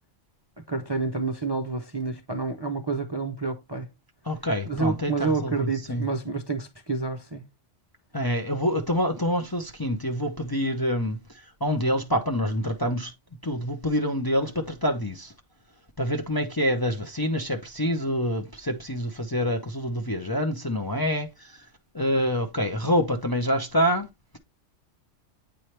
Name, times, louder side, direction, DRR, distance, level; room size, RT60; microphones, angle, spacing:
voice 1, 0.7-3.9 4.7-7.4, right 4 dB, 25° right, 0.6 m, -29 dB
voice 2, 4.3-6.0 8.1-11.2 11.6-13.1 13.4-15.3 16.0-21.5 21.9-24.1, equal, 25° left, 0.6 m, -26 dB
8.7 x 4.5 x 3.2 m
omnidirectional pair, 1.3 m